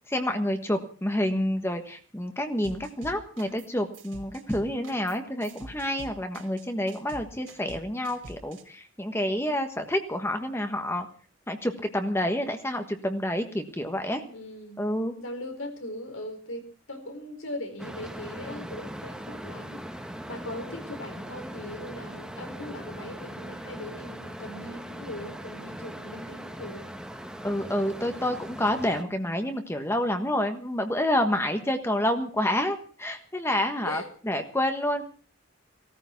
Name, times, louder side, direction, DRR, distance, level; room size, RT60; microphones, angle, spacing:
voice 1, 0.1-11.1 11.5-14.2 14.8-15.1 27.4-35.0, left 1 dB, 15° left, 6 dB, 1.3 m, -28 dB
sound 1, 2.6-3.7 3.9-8.6, right 1 dB, 75° right, 4.2 m, -45 dB
voice 2, 4.6-5.1 14.3-14.8 15.2-26.9 33.6-34.1, left 1 dB, 85° left, 5 dB, 4.5 m, -40 dB
sound 2, 17.8-29.0, equal, 5° right, 1.5 m, -40 dB
17.5 x 14.0 x 5.9 m, 0.41 s
head